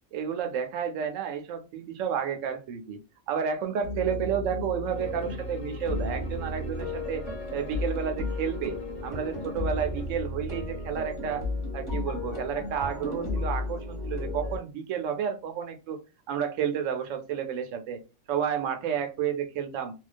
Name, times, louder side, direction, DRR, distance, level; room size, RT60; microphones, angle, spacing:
voice 1, 0.1-3.0 3.3-7.2 7.5-11.4 11.7-16.0 16.3-18.0 18.3-19.9, right 7 dB, 75° right, 7 dB, 0.9 m, -31 dB
sound 1, 3.8-14.6, left 2 dB, 25° right, 0.9 m, -33 dB
Bowed string instrument, 4.9-10.3, left 4 dB, 60° left, 1.0 m, -49 dB
2.3 x 2.2 x 2.4 m, 0.29 s
omnidirectional pair, 1.4 m